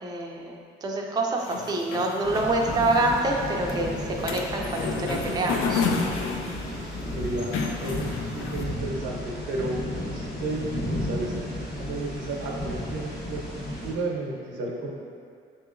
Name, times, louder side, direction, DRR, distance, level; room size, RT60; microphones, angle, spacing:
voice 1, 0.0-5.8, right 2 dB, 20° right, 0 dB, 0.4 m, -26 dB
sound 1, 1.4-8.6, left 5 dB, 85° left, 0.4 m, -32 dB
sound 2, 2.2-13.9, left 1 dB, 55° left, 1.2 m, -33 dB
voice 2, 7.1-7.5 7.8-9.8 10.1-14.9, right 2 dB, 85° right, -1 dB, 0.7 m, -33 dB
6.1 x 2.8 x 2.5 m, 2.2 s
cardioid pair, 90°, 20 cm